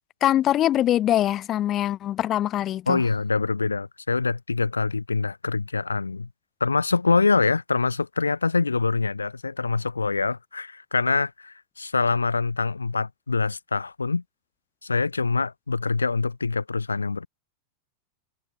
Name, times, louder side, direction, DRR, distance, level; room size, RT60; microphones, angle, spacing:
voice 1, 0.2-3.0, left 12 dB, 30° left, 1.9 m, -23 dB
voice 2, 2.9-6.3 6.6-14.2 14.8-17.3, left 4 dB, 80° left, 2.3 m, -25 dB
figure-of-eight pair, 90°, 0 cm